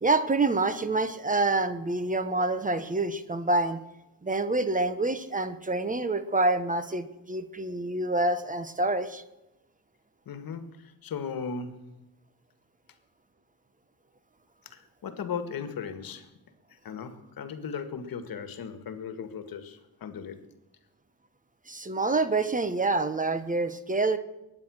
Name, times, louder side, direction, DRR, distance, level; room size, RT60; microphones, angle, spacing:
voice 1, 0.0-3.8 4.2-9.2 21.7-24.2, right 2 dB, 20° right, 11 dB, 1.2 m, -27 dB
voice 2, 10.3-11.9 14.7-16.3 16.7-20.4, left 6 dB, 75° left, 10 dB, 1.8 m, -37 dB
22.0 x 9.7 x 6.4 m, 0.96 s
cardioid pair, 110°, 36 cm